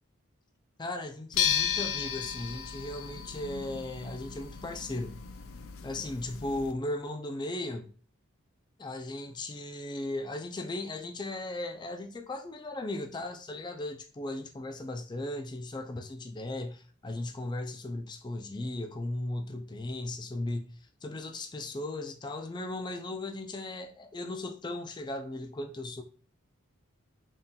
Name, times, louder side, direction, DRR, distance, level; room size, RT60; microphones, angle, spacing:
voice 1, 0.8-5.2 5.8-7.9 8.8-20.8 21.0-26.0, left 2 dB, 20° left, 0.4 m, -37 dB
sound 1, 1.3-6.7, left 8 dB, 80° left, 0.5 m, -34 dB
4.0 x 3.7 x 2.3 m
head